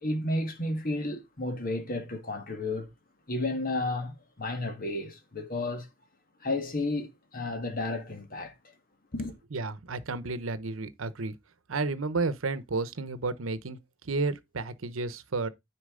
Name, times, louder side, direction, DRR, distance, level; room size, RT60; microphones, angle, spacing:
voice 1, 0.0-2.9 3.3-5.9 6.4-8.5 9.1-9.3, left 2 dB, 45° left, 1.6 m, -32 dB
voice 2, 9.5-11.3 11.7-13.8 14.0-15.5, right 3 dB, 85° right, 0.8 m, -32 dB
9.8 x 4.5 x 3.7 m
head